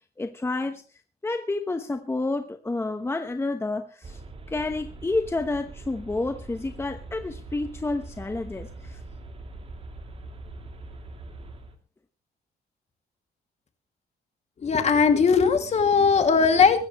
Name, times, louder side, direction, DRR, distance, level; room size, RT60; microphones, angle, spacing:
voice 1, 0.2-0.8 1.2-4.2 4.5-9.0, left 2 dB, 15° left, 7 dB, 1.0 m, -29 dB
sound 1, 4.0-11.7, right 2 dB, 35° right, 2.8 m, -42 dB
voice 2, 14.6-16.9, left 5 dB, 40° left, 7 dB, 2.4 m, -19 dB
22.5 x 13.5 x 3.1 m, 0.35 s
cardioid pair, 130°, 17 cm